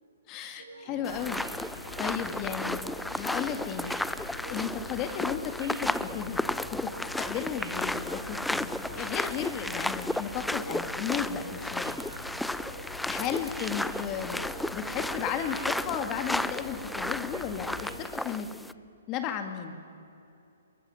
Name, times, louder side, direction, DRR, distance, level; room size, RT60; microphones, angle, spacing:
voice 1, 0.3-1.4 2.0-2.8 3.2-3.9 4.5-12.0 13.1-14.4 14.7-18.5 19.1-19.8, left 8 dB, 30° left, 7 dB, 2.3 m, -34 dB
sound 1, 0.6-18.4, right 3 dB, 75° right, 7.4 m, -48 dB
sound 2, 1.0-18.7, left 1 dB, 5° left, 0.6 m, -34 dB
sound 3, 1.1-18.1, left 3 dB, 70° left, 7.1 m, -46 dB
23.0 x 22.5 x 9.5 m, 2.6 s
hypercardioid pair, 130°, 0 cm